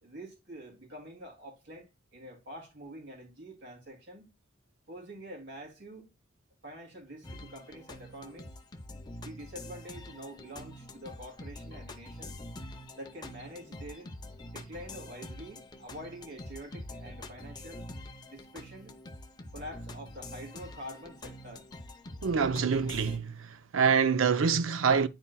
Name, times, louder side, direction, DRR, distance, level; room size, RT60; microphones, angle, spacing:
voice 1, 0.0-4.3 4.9-6.1 6.6-8.5 9.2-12.4 12.9-14.1 14.5-17.8 18.3-19.0 19.5-21.7, equal, 60° right, 2.7 m, -46 dB
sound 1, 7.2-23.2, left 1 dB, 20° left, 0.7 m, -45 dB
voice 2, 22.2-25.1, right 6 dB, 90° right, 0.6 m, -26 dB
9.7 x 4.3 x 2.2 m
head